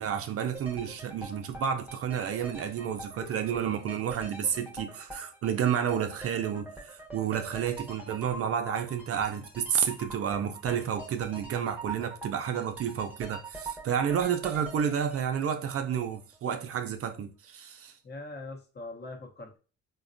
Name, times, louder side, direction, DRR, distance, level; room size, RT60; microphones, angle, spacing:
voice 1, 0.0-17.9, right 8 dB, 50° right, 0.4 m, -30 dB
sound 1, 0.5-16.5 16.8-16.9, right 2 dB, 5° right, 0.8 m, -44 dB
voice 2, 18.0-19.6, left 2 dB, 35° left, 0.8 m, -42 dB
3.9 x 2.1 x 2.5 m
cardioid pair, 90°, 30 cm